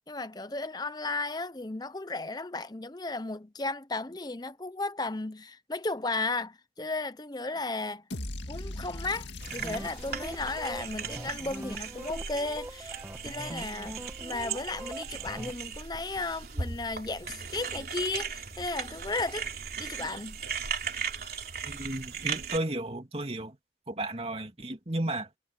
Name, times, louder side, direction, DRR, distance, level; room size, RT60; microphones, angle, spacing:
voice 1, 0.1-8.0 8.5-19.5 19.8-20.4, left 3 dB, 20° left, 0.9 m, -35 dB
sound 1, 8.1-12.2, left 1 dB, 85° left, 2.1 m, -41 dB
sound 2, 9.4-15.5, right 1 dB, 15° right, 1.5 m, -43 dB
sound 3, 9.4-22.6, right 6 dB, 55° right, 3.7 m, -38 dB
voice 2, 21.6-23.6 23.9-25.3, right 1 dB, 35° right, 2.7 m, -33 dB
head